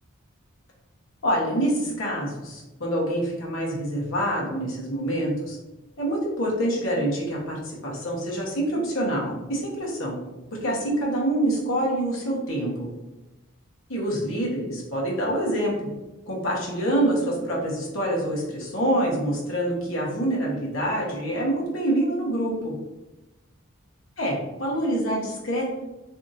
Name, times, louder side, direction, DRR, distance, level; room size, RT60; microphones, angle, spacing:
voice 1, 1.2-5.6 6.0-10.2 10.6-12.9 13.9-15.9 16.3-22.7 24.2-25.7, right 1 dB, 70° left, -3 dB, 1.0 m, -26 dB
2.7 x 2.4 x 4.0 m, 1.0 s
head